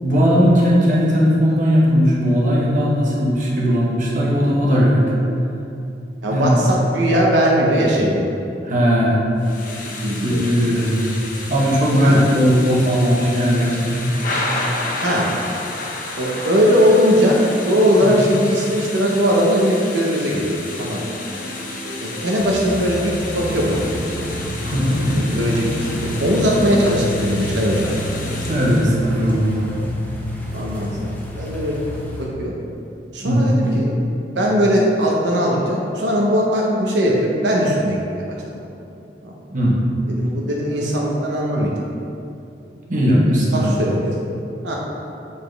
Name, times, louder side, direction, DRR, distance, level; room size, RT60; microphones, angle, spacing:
voice 1, 0.0-5.1 6.3-6.6 8.6-9.2 10.2-11.2 11.5-14.1 18.0-18.1 24.6-25.1 28.4-29.7 33.2-33.6 39.5-39.8 42.9-43.7, equal, 45° right, -5 dB, 1.1 m, -17 dB
voice 2, 6.2-8.3 9.8-10.4 12.0-12.3 15.0-15.3 16.2-21.0 22.0-23.9 25.0-28.0 30.5-31.8 32.2-32.5 33.1-33.9 34.4-38.2 39.2-39.3 40.1-41.7 43.5-44.2 44.6-44.7, equal, 85° right, -3 dB, 0.7 m, -19 dB
Thunder / Rain, 9.4-28.9, left 2 dB, 50° left, 0.7 m, -31 dB
sound 1, 21.0-29.8, right 1 dB, 25° right, 0.9 m, -35 dB
sound 2, 22.4-32.2, left 1 dB, 10° left, 0.7 m, -30 dB
6.8 x 4.3 x 3.3 m, 2.7 s
head